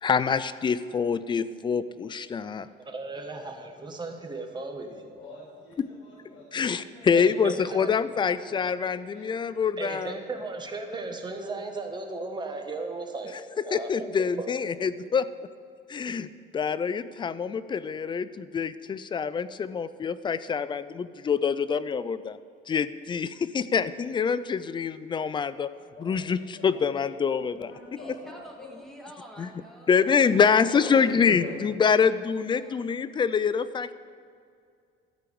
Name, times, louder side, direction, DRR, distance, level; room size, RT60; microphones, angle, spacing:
voice 1, 0.0-2.7 5.8-5.9 6.5-10.2 13.7-15.3 15.9-22.4 22.7-25.7 26.0-27.7 29.4-29.5 29.9-33.9, left 6 dB, 25° left, 14 dB, 0.3 m, -26 dB
voice 2, 2.8-5.0 7.1-7.9 9.8-13.4 13.7-13.9 14.2-14.5, right 3 dB, 20° right, 3 dB, 1.3 m, -36 dB
voice 3, 5.1-7.1 7.4-7.8 8.1-8.7 9.1-9.3 26.0-26.8 27.2-28.9 30.0-31.5, left 2 dB, 75° left, -5 dB, 3.0 m, -44 dB
voice 4, 28.0-30.0 32.5-32.8, right 1 dB, ahead, -1 dB, 1.7 m, -47 dB
13.5 x 4.6 x 8.5 m, 2.3 s
cardioid pair, 140°, 20 cm